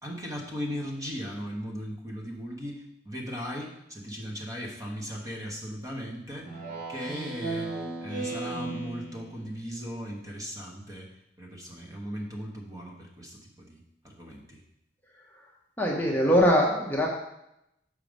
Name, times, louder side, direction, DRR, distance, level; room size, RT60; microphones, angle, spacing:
voice 1, 0.0-6.6 6.9-14.6, equal, 20° right, 0 dB, 1.2 m, -38 dB
Speech synthesizer, 6.4-9.5, right 2 dB, 50° right, 1.3 m, -35 dB
voice 2, 15.8-17.1, equal, 10° left, -2 dB, 0.8 m, -22 dB
6.6 x 5.0 x 5.2 m, 0.84 s
head